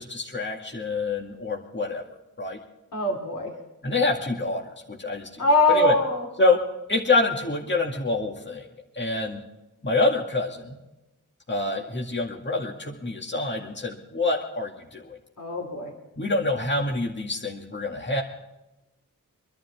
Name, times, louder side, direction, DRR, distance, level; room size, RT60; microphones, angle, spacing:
voice 1, 0.0-2.0 2.4-2.6 3.8-5.4 5.7-5.9 6.4-6.6 6.9-8.7 8.9-9.4 9.8-10.8 11.5-15.2 16.2-18.2, left 3 dB, 30° left, -1 dB, 2.1 m, -26 dB
voice 2, 2.9-3.5 5.4-6.3 15.4-15.9, left 1 dB, 70° left, 0 dB, 2.9 m, -22 dB
25.5 x 11.5 x 3.5 m, 1.0 s
wide cardioid pair, 65°, 34 cm